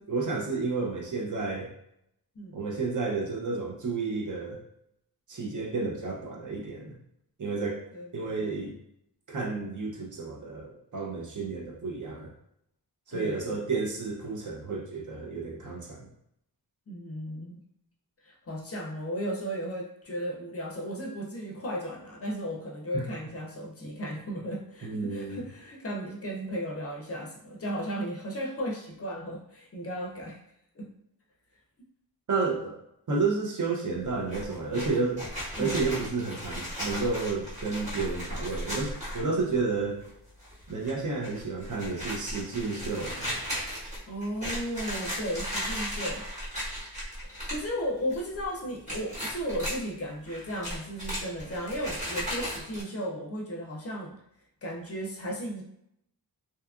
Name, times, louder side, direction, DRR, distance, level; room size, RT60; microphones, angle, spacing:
voice 1, 0.1-1.7 2.5-4.6 5.3-7.0 7.4-7.8 8.1-8.8 9.3-12.3 13.1-16.1 22.9-23.1 24.8-25.4 32.3-32.8 33.1-35.2 35.6-40.0 40.7-43.3, right 4 dB, 50° right, -1 dB, 0.6 m, -31 dB
voice 2, 7.9-8.6 13.1-13.6 16.9-17.6 18.2-30.4 30.8-30.9 35.6-35.8 44.1-46.2 46.6-46.7 47.3-54.1 54.6-55.6, equal, 40° left, -2 dB, 0.5 m, -35 dB
sound 1, 34.0-39.6 40.0-40.1 40.4-40.9 41.2-47.7 48.0-48.5 48.9-49.8 50.2-52.8, equal, 20° right, 1.0 m, -36 dB
2.7 x 2.3 x 2.3 m, 0.75 s
wide cardioid pair, 150°, 39 cm